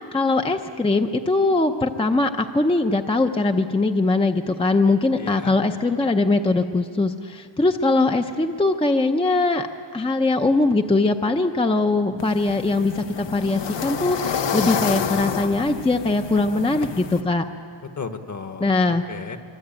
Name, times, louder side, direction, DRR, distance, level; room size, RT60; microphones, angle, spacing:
voice 1, 0.1-9.7 9.9-17.4 18.6-19.0, left 2 dB, 10° left, 6 dB, 0.7 m, -21 dB
voice 2, 5.2-5.5 18.0-19.4, left 5 dB, 40° left, 8 dB, 1.4 m, -34 dB
sound 1, 12.2-17.2, left 7 dB, 70° left, 1.4 m, -28 dB
25.0 x 24.5 x 8.9 m, 2.4 s
wide cardioid pair, 165°, 45 cm